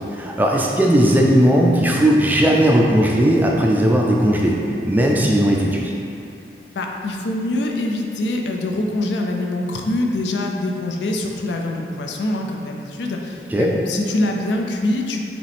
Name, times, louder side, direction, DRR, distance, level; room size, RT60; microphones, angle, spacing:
voice 1, 0.1-4.6 4.8-5.9 13.5-13.7, equal, 10° right, -1 dB, 0.3 m, -17 dB
voice 2, 6.7-15.2, left 1 dB, 85° left, 1 dB, 0.5 m, -24 dB
5.0 x 3.0 x 3.4 m, 2.6 s
head